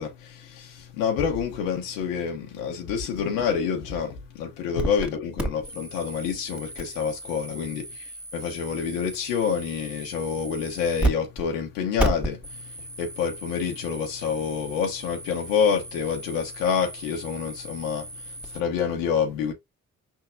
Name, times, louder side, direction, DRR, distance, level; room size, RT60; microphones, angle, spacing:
voice 1, 0.0-19.5, left 6 dB, 85° left, 1.0 m, -28 dB
sound 1, 4.8-5.1 5.4-11.1 11.4-11.5 12.0-18.6, right 1 dB, 5° right, 1.9 m, -34 dB
5.5 x 3.6 x 2.6 m
hypercardioid pair, 45°, 35 cm